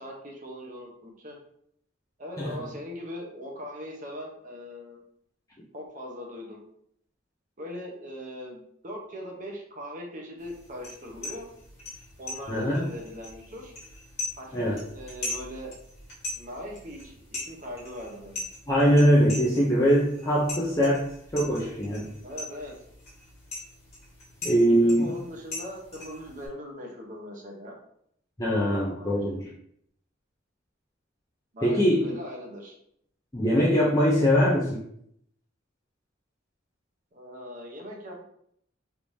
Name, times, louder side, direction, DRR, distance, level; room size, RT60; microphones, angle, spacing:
voice 1, 0.0-1.4 2.2-5.0 5.7-6.6 7.6-11.5 12.2-13.7 14.4-15.7 16.4-18.4 22.2-22.7 24.7-27.8 28.6-29.4 31.5-32.8 37.1-38.2, equal, 40° right, -1 dB, 0.8 m, -40 dB
sound 1, 10.4-26.5, left 2 dB, 35° left, 1.3 m, -41 dB
voice 2, 12.5-12.8 14.5-14.8 18.7-22.1 24.4-25.1 28.4-29.5 31.6-32.1 33.3-34.8, equal, 15° left, -6 dB, 0.5 m, -22 dB
3.4 x 3.1 x 2.7 m, 0.70 s
head